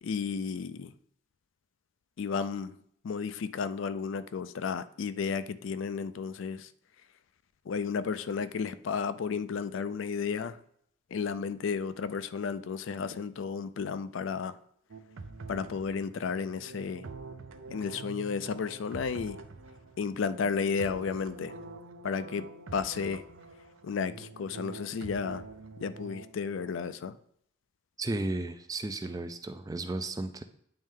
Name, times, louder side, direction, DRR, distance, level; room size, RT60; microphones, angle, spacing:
voice 1, 0.0-0.9 2.2-2.8 3.0-6.7 7.7-10.6 11.1-14.6 15.5-17.1 17.7-19.4 20.0-21.6 22.0-23.2 23.8-25.5 25.8-27.2, left 5 dB, 70° left, 0.4 m, -33 dB
sound 1, 14.9-26.7, right 3 dB, 75° right, 0.6 m, -46 dB
voice 2, 28.0-30.4, right 2 dB, 15° right, 0.3 m, -34 dB
8.9 x 3.2 x 3.6 m
head